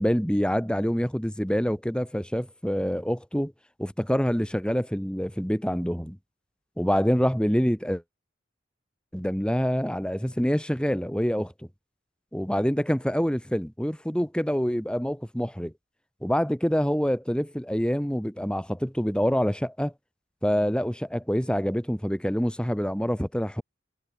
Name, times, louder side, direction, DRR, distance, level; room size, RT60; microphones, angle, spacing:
voice 1, 0.0-3.5 3.8-6.2 6.8-8.0 9.1-11.5 12.3-15.7 16.2-19.9 20.4-23.6, equal, 5° left, 3.7 m, -26 dB
head